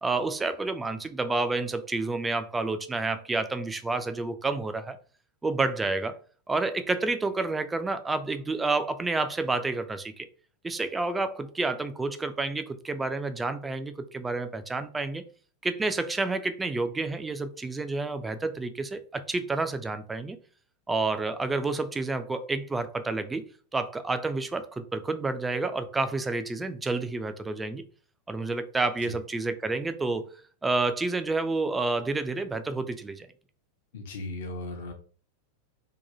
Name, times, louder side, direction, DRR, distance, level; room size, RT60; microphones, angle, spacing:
voice 1, 0.0-5.0 5.4-6.2 6.5-10.3 10.6-15.2 15.6-20.4 20.9-23.5 23.7-27.8 28.3-30.3 30.6-33.3, right 3 dB, 10° right, 0.3 m, -29 dB
voice 2, 33.9-34.9, left 2 dB, 55° left, 0.6 m, -37 dB
2.8 x 2.2 x 2.5 m
figure-of-eight pair, 90°, 0 cm